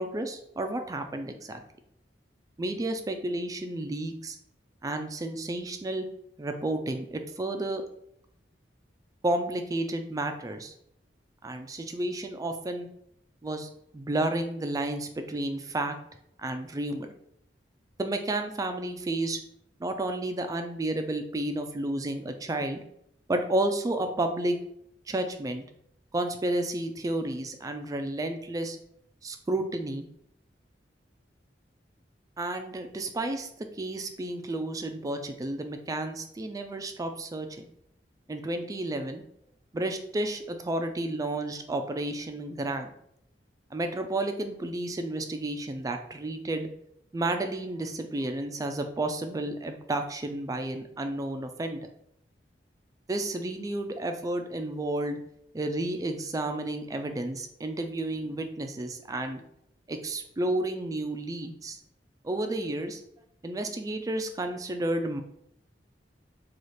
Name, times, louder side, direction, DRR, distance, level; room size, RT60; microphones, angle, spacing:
voice 1, 0.0-1.6 2.6-4.4 4.8-6.1 6.4-7.8 9.2-10.7 11.4-12.9 13.4-15.9 16.4-17.1 18.0-19.4 19.8-22.8 23.3-24.6 25.1-25.6 26.1-28.8 29.2-30.1 32.4-33.5 33.7-37.7 38.3-39.2 39.7-42.9 43.7-46.7 47.1-51.8 53.1-55.2 55.5-59.4 59.9-61.8 62.2-63.0 63.4-65.2, right 1 dB, 20° right, 6 dB, 0.3 m, -31 dB
3.2 x 2.4 x 4.1 m, 0.73 s
head